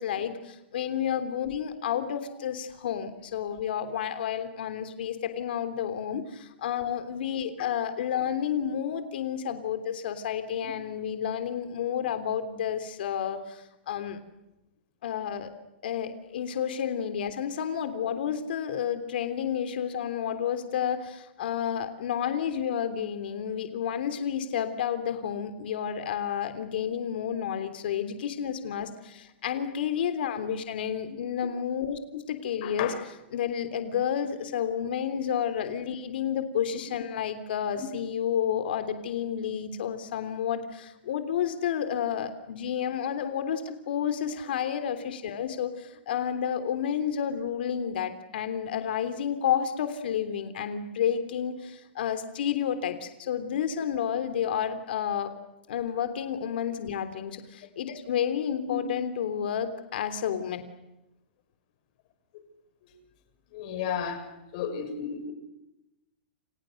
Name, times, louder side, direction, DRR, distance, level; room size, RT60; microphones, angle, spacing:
voice 1, 0.0-14.2 15.0-15.5 15.8-32.9 33.3-55.3 55.7-60.6, left 8 dB, 65° left, 9 dB, 3.3 m, -30 dB
voice 2, 32.6-33.0 58.7-58.8 62.8-62.9 63.5-64.3 64.5-65.3, left 8 dB, 40° left, 7 dB, 6.2 m, -33 dB
30.0 x 29.0 x 6.6 m, 0.94 s
supercardioid pair, 165°, 6 cm